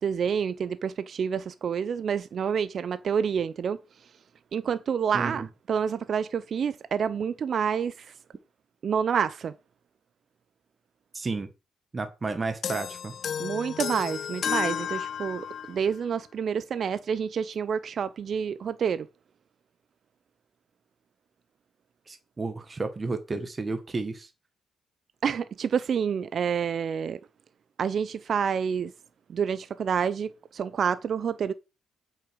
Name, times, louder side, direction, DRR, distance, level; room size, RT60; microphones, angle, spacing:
voice 1, 0.0-3.8 4.5-8.1 8.8-9.5 13.4-19.1 25.2-27.2 27.8-28.9 29.3-31.5, right 7 dB, 55° right, 0.6 m, -28 dB
voice 2, 5.1-5.5 11.1-11.5 11.9-13.1 22.1-24.3, right 3 dB, 30° right, 1.6 m, -32 dB
sound 1, 12.6-15.8, left 8 dB, 55° left, 0.5 m, -32 dB
8.4 x 6.4 x 6.2 m
cardioid pair, 90°, 0 cm